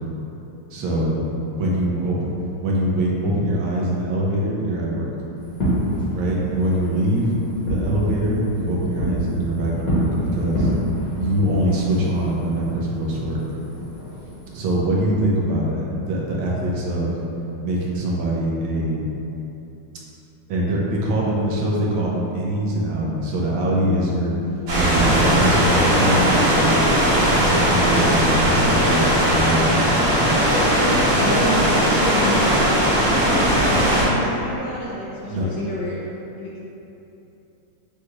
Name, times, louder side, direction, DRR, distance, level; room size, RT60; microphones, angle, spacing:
voice 1, 0.7-1.2 1.6-2.3 2.6-5.1 6.1-7.3 7.6-10.1 10.3-10.7 11.1-13.4 14.5-17.2 17.6-19.0 20.5-24.3 24.7-26.8 27.3-30.0 35.3-35.5, right 1 dB, 75° right, -4 dB, 1.5 m, -23 dB
voice 2, 1.9-2.3 30.5-36.0 36.4-36.7, left 1 dB, 75° left, -6 dB, 1.0 m, -29 dB
Fireworks, 5.4-14.7, equal, 50° left, 1.4 m, -27 dB
sound 1, 24.7-34.1, equal, 60° right, 1.6 m, -18 dB
6.3 x 2.3 x 3.0 m, 3.0 s
omnidirectional pair, 2.4 m